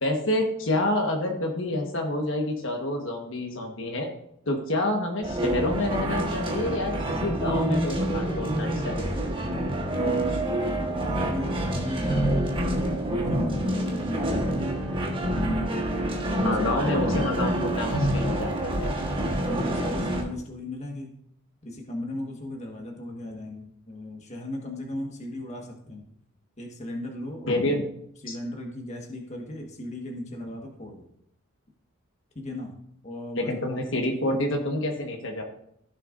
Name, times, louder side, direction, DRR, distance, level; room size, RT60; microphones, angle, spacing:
voice 1, 0.0-4.1 4.5-9.2 16.4-18.9 27.5-27.8 28.3-28.4 33.3-35.4, left 1 dB, 65° left, 2 dB, 1.4 m, -28 dB
sound 1, 5.2-20.2, right 1 dB, 25° right, 1.3 m, -27 dB
voice 2, 11.1-14.7 15.8-16.0 16.7-16.9 19.3-21.1 21.6-26.1 26.6-27.6 28.2-31.1 32.3-32.7 33.0-33.8, left 1 dB, 35° left, 1 dB, 1.5 m, -37 dB
15.0 x 6.6 x 2.6 m, 0.71 s
head